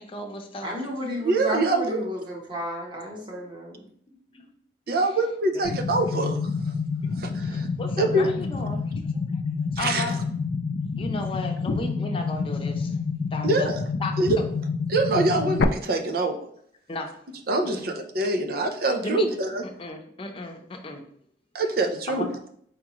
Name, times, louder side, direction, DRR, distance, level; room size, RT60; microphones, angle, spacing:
voice 1, 0.0-0.7 4.1-4.5 4.9-5.0 5.5-5.8 7.0-7.1 7.4-8.8 9.3-9.4 9.8-10.2 11.0-13.0 13.3-13.7 14.0-14.1 16.9-17.1 17.8-17.9 19.0-19.3 19.8-21.0 22.1-22.3, left 2 dB, 30° left, 2 dB, 0.7 m, -34 dB
voice 2, 0.6-3.8, equal, 25° right, -1 dB, 1.2 m, -32 dB
voice 3, 1.2-2.0 4.9-6.5 7.2-7.7 8.0-8.3 9.8-10.1 13.4-13.8 14.2-14.3 14.9-16.4 17.5-19.6 21.5-22.3, right 2 dB, 55° right, 5 dB, 0.6 m, -24 dB
sound 1, 5.6-15.6, left 4 dB, 90° left, 0.4 m, -28 dB
4.7 x 3.6 x 3.0 m, 0.64 s
head